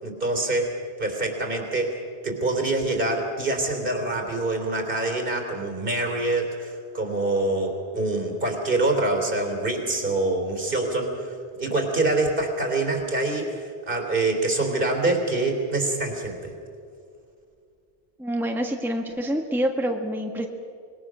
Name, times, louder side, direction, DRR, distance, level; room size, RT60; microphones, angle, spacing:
voice 1, 0.0-16.5, right 2 dB, 55° right, 3 dB, 3.5 m, -25 dB
voice 2, 18.2-20.5, equal, ahead, 3 dB, 1.4 m, -26 dB
25.5 x 21.5 x 6.2 m, 2.4 s
omnidirectional pair, 1.1 m